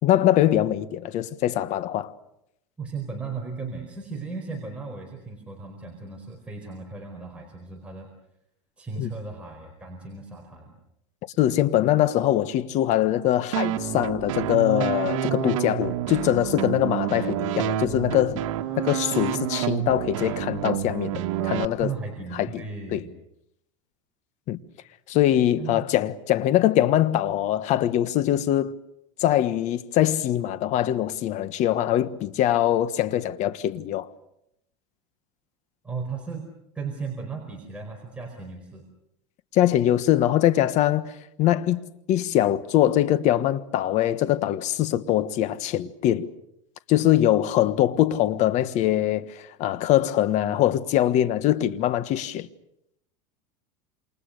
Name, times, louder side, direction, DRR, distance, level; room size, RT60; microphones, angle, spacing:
voice 1, 0.0-2.1 9.0-9.1 11.4-18.4 18.8-21.9 22.4-22.6 22.9-23.0 24.5-24.6 25.1-28.7 29.2-34.1 39.5-41.1 41.4-46.3 46.9-52.5, left 12 dB, 45° left, 1.4 m, -23 dB
voice 2, 2.8-8.1 8.8-10.8 21.8-23.1 25.6-25.9 35.8-38.9, right 4 dB, 5° right, 4.7 m, -36 dB
sound 1, 13.5-21.7, right 10 dB, 75° right, 1.8 m, -28 dB
28.0 x 28.0 x 6.7 m
supercardioid pair, 135°, 17 cm